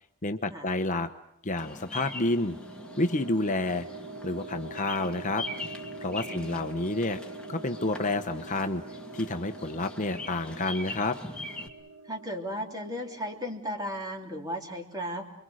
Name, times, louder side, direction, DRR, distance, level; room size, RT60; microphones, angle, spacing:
voice 1, 0.2-1.1 1.4-2.6 3.0-3.9 4.2-5.5 6.0-7.2 7.5-8.8 9.1-11.2, left 2 dB, 35° left, 7 dB, 0.9 m, -29 dB
Bird vocalization bird call bird song, 1.6-11.7, left 2 dB, 5° left, 2.2 m, -42 dB
sound 1, 1.8-13.6, right 3 dB, 60° right, 1.2 m, -45 dB
voice 2, 6.2-6.6 12.0-15.3, equal, 15° right, 3 dB, 3.2 m, -35 dB
29.5 x 23.5 x 6.5 m, 0.75 s
head